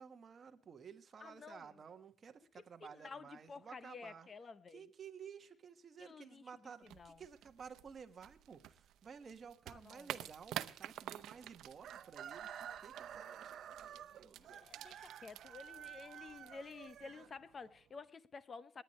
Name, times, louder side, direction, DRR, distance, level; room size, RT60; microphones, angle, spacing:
voice 1, 0.0-4.3 4.7-14.7, right 6 dB, 35° right, 1.5 m, -54 dB
voice 2, 1.2-1.8 2.8-4.9 6.0-7.2 9.7-10.3 14.2-18.8, left 4 dB, 30° left, 0.8 m, -52 dB
sound 1, 6.8-17.1, right 12 dB, 90° right, 0.8 m, -50 dB
Chicken rooster, 11.8-17.8, right 9 dB, 60° right, 0.8 m, -51 dB
28.5 x 10.5 x 3.2 m
cardioid pair, 170°, 0 cm